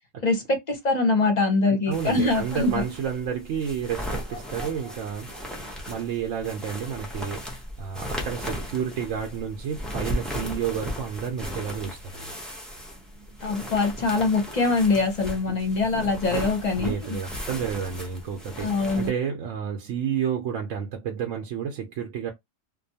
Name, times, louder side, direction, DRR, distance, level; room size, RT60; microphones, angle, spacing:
voice 1, 0.2-2.8 13.4-17.2 18.6-19.1, left 3 dB, 40° left, 0.7 m, -23 dB
sound 1, 0.7-1.0 2.1-2.2 3.0-3.1 4.0-5.6, right 1 dB, 40° right, 0.8 m, -45 dB
voice 2, 1.7-5.4 5.6-12.3 16.8-18.7 19.0-22.3, right 8 dB, 80° right, 1.0 m, -31 dB
sound 2, 1.9-19.1, equal, ahead, 0.4 m, -36 dB
2.6 x 2.2 x 2.7 m
omnidirectional pair, 1.3 m